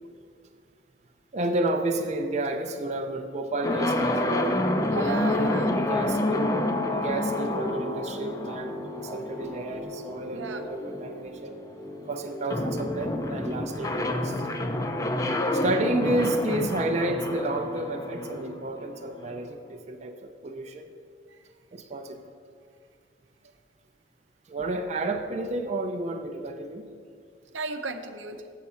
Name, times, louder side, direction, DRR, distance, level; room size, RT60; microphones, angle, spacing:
voice 1, 1.3-4.4 5.7-6.5 6.9-11.5 12.1-14.5 15.5-20.9 21.7-22.2 24.5-26.8, right 2 dB, 35° right, 4 dB, 0.5 m, -31 dB
sound 1, 3.6-19.4, left 1 dB, 15° left, 0.5 m, -29 dB
voice 2, 4.9-5.7 10.3-10.6 21.3-21.4 27.5-28.4, right 4 dB, 80° right, 6 dB, 0.7 m, -34 dB
7.7 x 7.4 x 5.6 m, 2.1 s
head